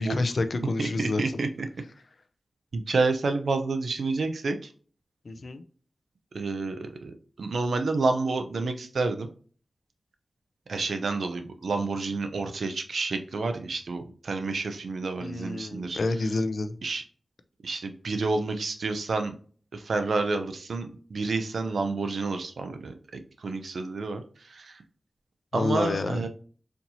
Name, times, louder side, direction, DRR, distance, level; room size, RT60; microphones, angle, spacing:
voice 1, 0.0-1.2 5.3-5.6 15.2-16.8 25.5-26.3, left 3 dB, 65° left, 9 dB, 0.4 m, -28 dB
voice 2, 0.8-1.7 2.7-4.7 6.3-9.3 10.7-16.0 16.8-17.0 17.6-19.4 19.7-24.8 25.5-26.3, right 3 dB, 85° right, 7 dB, 0.5 m, -29 dB
4.3 x 2.8 x 2.6 m, 0.43 s
wide cardioid pair, 75°, 0 cm